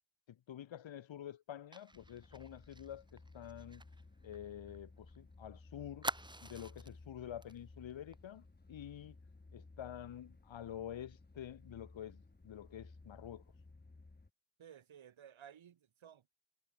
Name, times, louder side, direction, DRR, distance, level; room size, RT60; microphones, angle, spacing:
voice 1, 0.3-3.8 4.2-6.1 6.4-9.1 9.5-13.4, left 10 dB, 75° left, 1.3 m, -48 dB
Fire, 1.7-5.2 5.4-5.5 6.0-7.0 7.4-7.6 7.9-8.1, right 2 dB, 10° right, 0.8 m, -46 dB
sound 1, 1.9-14.3, left 3 dB, 20° left, 1.6 m, -58 dB
voice 2, 14.6-16.3, right 9 dB, 85° right, 4.4 m, -56 dB
supercardioid pair, 40°, 46 cm